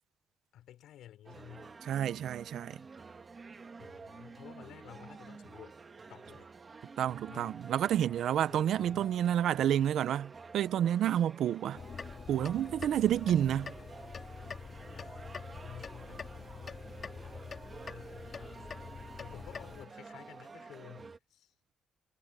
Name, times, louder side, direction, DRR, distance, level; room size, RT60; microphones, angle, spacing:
voice 1, 0.5-1.8 3.8-5.8 6.1-6.5 7.3-7.6 8.3-9.3 14.9-16.7 17.9-18.9 19.2-21.5, left 12 dB, 85° left, 6.0 m, -53 dB
sound 1, 1.2-21.2, right 4 dB, 30° right, 1.6 m, -50 dB
voice 2, 1.8-2.8 7.0-11.8 12.3-13.8, right 10 dB, 70° right, 0.7 m, -29 dB
sound 2, 11.7-19.9, left 6 dB, 40° left, 3.2 m, -45 dB
cardioid pair, 130°, 0 cm